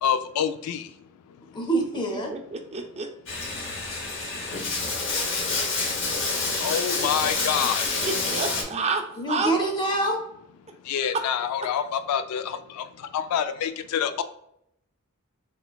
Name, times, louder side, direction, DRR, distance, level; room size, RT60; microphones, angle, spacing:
voice 1, 0.0-1.6 4.7-4.8 5.4-5.9 6.6-8.0 10.8-14.2, left 8 dB, 85° left, 10 dB, 0.3 m, -28 dB
voice 2, 1.5-2.3 7.0-7.1 8.6-8.8 9.2-10.2, right 2 dB, 20° left, 3 dB, 0.7 m, -26 dB
voice 3, 2.1-3.1 8.0-9.5 11.1-11.2, right 4 dB, 30° right, 5 dB, 0.4 m, -29 dB
Bathtub (filling or washing), 3.3-8.6, left 3 dB, 60° left, 0.8 m, -28 dB
3.7 x 3.3 x 2.3 m, 0.76 s
head